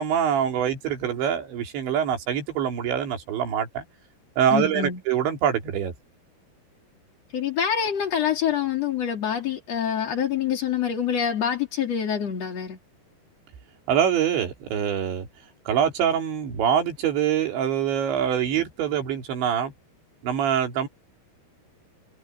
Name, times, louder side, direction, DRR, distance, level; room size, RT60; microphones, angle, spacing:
voice 1, 0.0-3.8 4.4-5.9 13.9-15.3 15.7-19.7 20.2-20.9, right 9 dB, 80° right, 5.4 m, -24 dB
voice 2, 4.5-5.0 7.3-12.8, left 8 dB, 40° left, 3.4 m, -26 dB
omnidirectional pair, 5.1 m